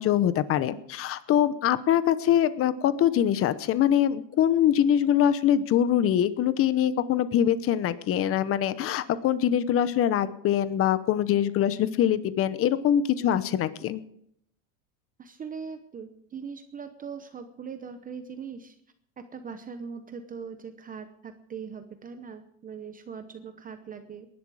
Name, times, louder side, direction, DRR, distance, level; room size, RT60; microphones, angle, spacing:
voice 1, 0.0-14.0, left 10 dB, 35° left, 15 dB, 0.9 m, -23 dB
voice 2, 15.2-18.8 19.2-24.3, right 6 dB, 20° right, 8 dB, 0.8 m, -40 dB
19.5 x 11.5 x 4.9 m, 0.70 s
cardioid pair, 145°, 40 cm